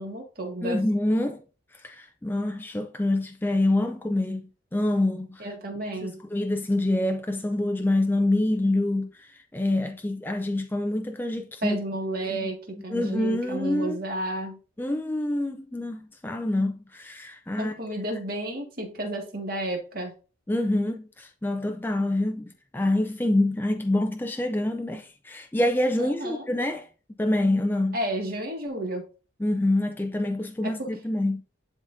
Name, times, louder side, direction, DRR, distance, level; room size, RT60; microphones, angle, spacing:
voice 1, 0.0-0.8 5.4-6.1 11.6-14.6 17.6-20.1 26.0-26.5 27.9-29.0 30.6-30.9, right 1 dB, 45° right, 1.9 m, -32 dB
voice 2, 0.6-1.4 1.7-5.5 6.0-11.8 12.2-12.5 12.9-14.0 14.8-17.7 20.5-26.9 27.2-28.0 29.4-31.4, left 1 dB, 10° left, 0.4 m, -26 dB
11.0 x 3.8 x 2.6 m
head